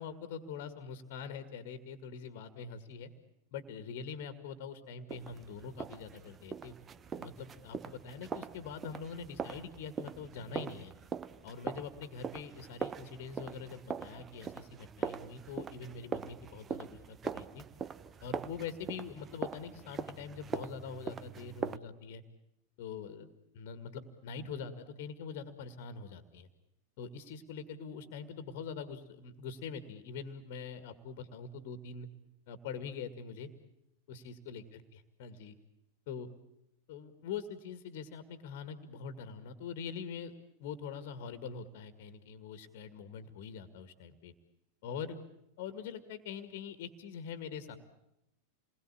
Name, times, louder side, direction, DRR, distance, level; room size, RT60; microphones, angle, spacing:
voice 1, 0.0-3.1 3.5-6.7 7.1-10.9 11.4-17.6 18.2-22.2 22.8-26.5 27.0-32.1 32.5-33.5 34.1-35.6 36.1-36.3 36.9-40.3 40.6-44.3 44.8-45.2 45.6-47.8, left 6 dB, 50° left, 11 dB, 2.0 m, -44 dB
sound 1, 5.1-21.8, right 6 dB, 20° right, 0.9 m, -42 dB
28.5 x 21.5 x 8.7 m, 0.86 s
figure-of-eight pair, 90°, 0 cm